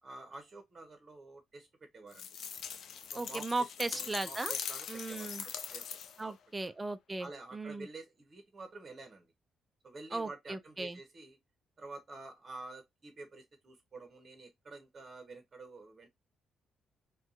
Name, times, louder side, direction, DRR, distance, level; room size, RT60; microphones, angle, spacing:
voice 1, 0.0-1.7 1.9-2.3 3.1-6.3 6.6-6.7 7.2-9.3 9.8-11.4 11.8-16.1, right 3 dB, 40° right, 0.9 m, -49 dB
sound 1, 2.1-6.3, left 7 dB, 70° left, 0.3 m, -41 dB
voice 2, 3.1-4.6 4.9-5.4 6.2-7.9 10.1-11.0, right 2 dB, 25° right, 0.5 m, -37 dB
2.6 x 2.3 x 2.4 m
hypercardioid pair, 50°, 0 cm